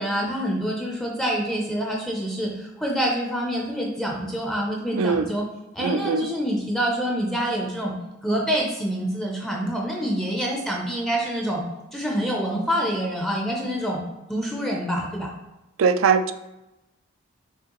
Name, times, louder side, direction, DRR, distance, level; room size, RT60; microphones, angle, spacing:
voice 1, 0.0-5.4 5.7-7.9 8.2-11.6 11.9-14.0 14.3-15.3, equal, ahead, -2 dB, 0.5 m, -26 dB
voice 2, 4.9-5.3 5.8-6.3 15.8-16.3, right 5 dB, 75° right, 11 dB, 0.3 m, -21 dB
6.3 x 2.8 x 3.0 m, 0.96 s
head